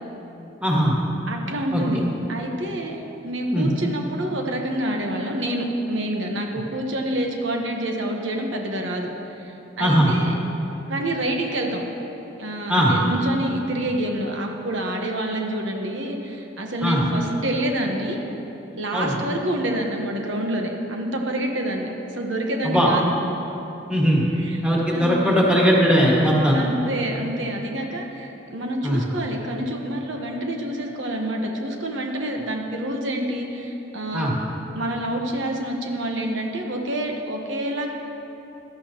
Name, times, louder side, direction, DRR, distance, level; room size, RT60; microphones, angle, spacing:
voice 1, 0.6-0.9 1.7-1.8 3.5-3.7 9.8-10.1 12.7-12.9 16.8-17.0 18.9-19.1 22.6-22.9 23.9-24.2 24.6-26.6 28.8-29.0 34.1-34.3, equal, 5° right, -5 dB, 1.9 m, -19 dB
voice 2, 1.3-2.0 2.3-9.1 9.4-9.5 9.8-10.3 10.9-11.8 12.4-18.2 18.8-23.1 23.6-23.7 24.3-24.6 24.9-25.4 26.5-34.3 34.7-37.9, right 1 dB, 85° right, 1 dB, 1.2 m, -27 dB
16.5 x 12.0 x 3.0 m, 3.0 s
head